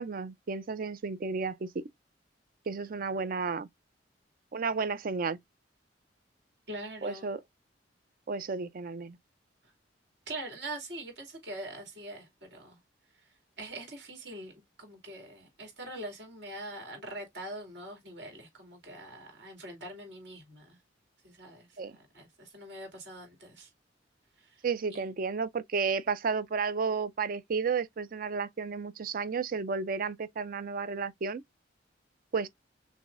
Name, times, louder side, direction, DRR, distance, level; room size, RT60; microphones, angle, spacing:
voice 1, 0.0-1.7 2.7-3.7 4.5-5.4 7.0-7.4 8.3-9.2 21.8-21.9 24.6-31.4 32.3-32.5, right 5 dB, 50° right, 0.5 m, -32 dB
voice 2, 6.7-7.3 10.3-12.8 13.6-14.5 14.8-20.8 21.2-21.8 22.1-23.7 24.4-24.6 24.9-25.1, right 1 dB, 65° right, 2.5 m, -43 dB
6.2 x 2.7 x 2.4 m
head